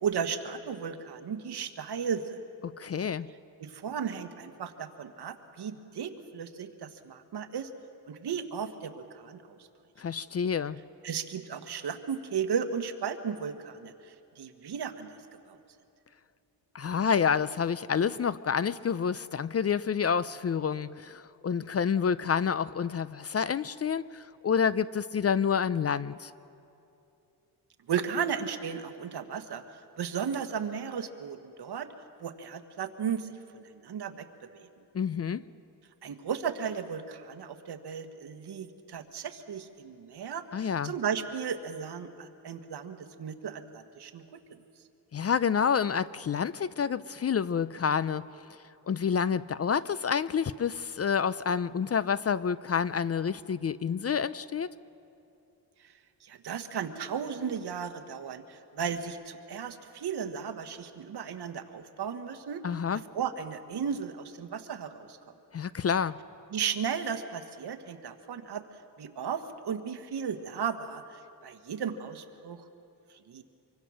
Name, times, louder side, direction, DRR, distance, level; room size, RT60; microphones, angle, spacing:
voice 1, 0.0-2.4 3.6-7.7 8.1-9.6 11.0-15.2 15.5-15.6 27.9-29.6 30.0-31.9 32.2-34.3 34.5-34.7 36.0-44.2 56.2-62.6 63.1-65.2 66.5-68.6 69.0-72.7 73.3-73.4, right 7 dB, 70° right, 7 dB, 1.5 m, -35 dB
voice 2, 2.6-3.3 10.0-10.8 16.7-26.3 34.9-35.4 40.5-40.9 45.1-48.2 48.9-54.7 62.6-63.0 65.5-66.1, left 7 dB, 35° left, 17 dB, 0.5 m, -28 dB
25.5 x 24.0 x 6.4 m, 2.7 s
cardioid pair, 100°, 42 cm